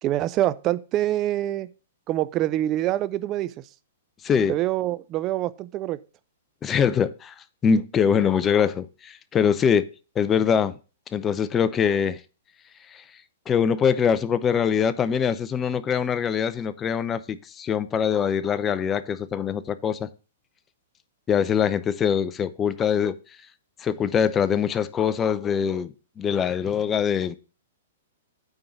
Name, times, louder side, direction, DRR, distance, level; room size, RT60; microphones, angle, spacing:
voice 1, 0.0-1.7 2.1-3.5 4.5-6.0 8.2-8.3, right 14 dB, 30° right, 0.6 m, -25 dB
voice 2, 4.2-4.5 6.6-7.3 7.6-9.9 10.2-10.7 11.1-12.2 12.9-13.0 13.5-20.1 21.3-23.1 23.8-27.4, left 7 dB, 20° left, 0.6 m, -23 dB
8.9 x 3.8 x 6.9 m
hypercardioid pair, 130°, 0 cm